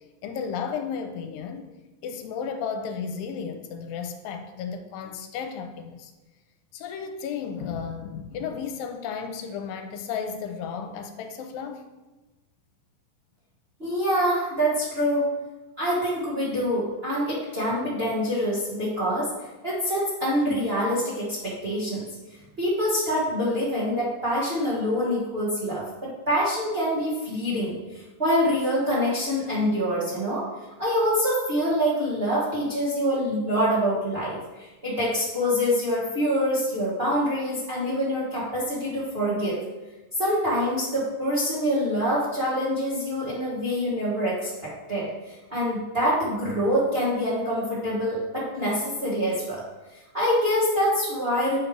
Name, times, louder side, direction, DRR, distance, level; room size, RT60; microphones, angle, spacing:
voice 1, 0.2-1.7 2.0-6.1 6.7-11.8, left 6 dB, 85° left, 6 dB, 2.3 m, -33 dB
voice 2, 13.8-15.3 15.8-19.3 19.6-22.1 22.6-30.5 30.8-39.6 40.2-45.1 45.5-49.6 50.1-51.6, equal, 75° right, -8 dB, 0.5 m, -25 dB
8.7 x 3.3 x 5.0 m, 1.1 s
omnidirectional pair, 4.1 m